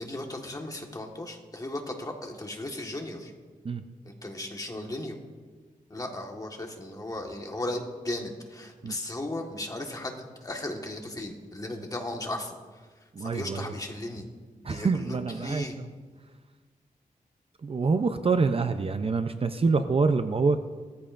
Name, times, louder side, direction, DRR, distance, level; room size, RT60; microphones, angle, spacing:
voice 1, 0.0-3.3 4.0-5.2 5.9-12.5 13.2-14.2 14.6-15.8, left 1 dB, 25° left, 2 dB, 1.5 m, -36 dB
voice 2, 13.1-13.7 14.6-15.9 17.6-20.6, right 4 dB, 40° right, 8 dB, 0.5 m, -26 dB
18.0 x 14.0 x 2.5 m, 1.4 s
wide cardioid pair, 145°, 15 cm